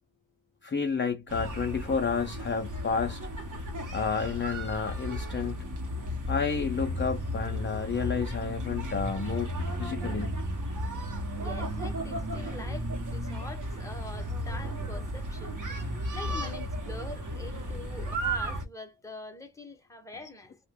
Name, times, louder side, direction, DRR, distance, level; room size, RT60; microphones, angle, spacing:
voice 1, 0.6-3.3 3.9-5.6 6.3-9.5 9.8-10.4, left 5 dB, 30° left, 0.4 m, -30 dB
sound 1, 1.3-18.7, equal, 50° right, 0.8 m, -34 dB
voice 2, 11.3-15.6 16.1-20.6, left 2 dB, 10° left, 0.7 m, -44 dB
2.9 x 2.1 x 3.4 m
wide cardioid pair, 110°, 41 cm